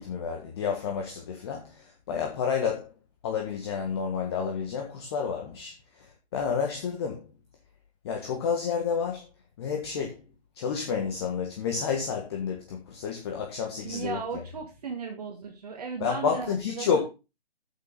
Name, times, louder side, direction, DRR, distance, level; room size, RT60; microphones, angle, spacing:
voice 1, 0.0-2.9 3.2-7.3 8.0-9.3 9.6-10.2 10.5-14.2 16.0-17.0, left 6 dB, 25° left, 1.5 m, -30 dB
voice 2, 13.8-17.0, right 5 dB, 40° right, 1.7 m, -36 dB
9.7 x 7.5 x 3.8 m
figure-of-eight pair, 145°, 31 cm